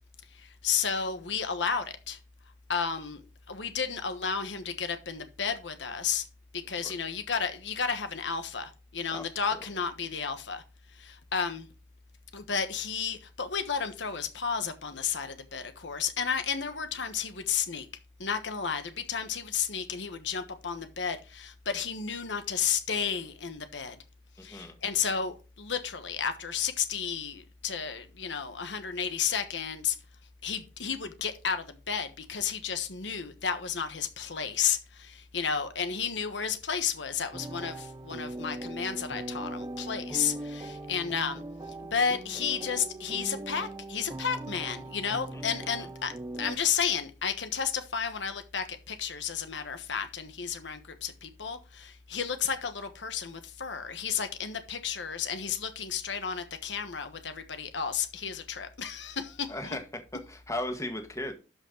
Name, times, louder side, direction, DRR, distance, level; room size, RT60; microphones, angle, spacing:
voice 1, 0.3-2.2 2.7-3.2 3.5-6.2 6.5-10.6 10.9-11.7 12.3-17.9 18.2-24.0 24.4-30.0 30.4-41.4 41.9-46.1 46.4-59.8, left 7 dB, 85° left, 1.2 m, -32 dB
voice 2, 9.1-9.6 24.4-24.8 45.3-45.4 45.8-45.9 59.5-59.8 60.1-61.3, left 1 dB, 15° left, 1.7 m, -37 dB
sound 1, 37.3-46.6, right 2 dB, 20° right, 0.6 m, -40 dB
12.0 x 5.6 x 3.8 m
head